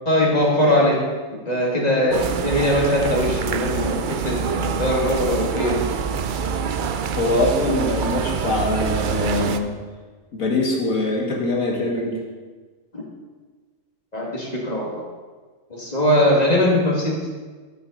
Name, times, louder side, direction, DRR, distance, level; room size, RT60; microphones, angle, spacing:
voice 1, 0.1-1.1 1.5-5.9 12.9-13.0 14.1-15.1 15.7-17.2, left 1 dB, 30° left, -3 dB, 2.2 m, -21 dB
sound 1, 2.1-9.6, right 6 dB, 60° right, 0.5 m, -25 dB
voice 2, 7.2-9.7 10.3-12.2, left 2 dB, 85° left, -1 dB, 2.2 m, -23 dB
12.0 x 8.0 x 4.0 m, 1.4 s
omnidirectional pair, 1.4 m